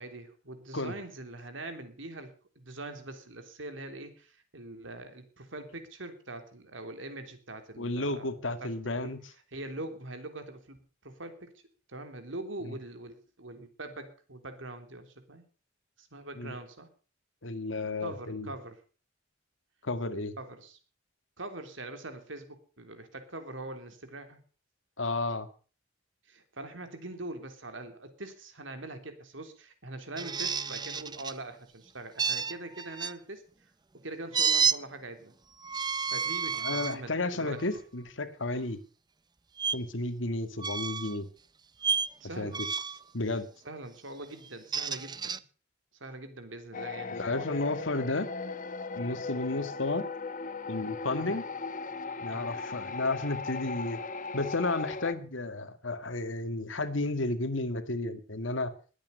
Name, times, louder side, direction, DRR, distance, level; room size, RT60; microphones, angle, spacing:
voice 1, 0.0-9.1 9.5-10.8 11.0-11.5 11.9-15.4 16.0-16.9 18.0-18.8 20.4-20.8 21.4-24.4 26.3-33.4 34.0-35.3 36.1-37.6 42.2-42.6 43.6-45.4 46.0-47.4 51.2-51.4 52.3-52.6, right 2 dB, 85° right, 7 dB, 3.4 m, -43 dB
voice 2, 7.8-9.2 16.4-16.5 17.4-18.5 19.8-20.3 25.0-25.5 36.6-38.8 39.7-41.3 42.4-42.7 43.1-43.5 47.1-48.3 49.0-50.1 50.7-51.4 52.2-54.0 54.3-58.7, left 2 dB, 85° left, 10 dB, 1.9 m, -32 dB
sound 1, 30.2-31.4 32.2-33.1 34.3-34.8 35.6-37.0 37.6-37.8 39.6-39.8 40.6-41.2 41.8-42.1 42.5-43.0 44.5-45.4, right 6 dB, 20° right, 0.6 m, -30 dB
sound 2, 46.7-55.1, left 4 dB, 45° left, 1.1 m, -38 dB
21.0 x 8.8 x 6.7 m, 0.39 s
head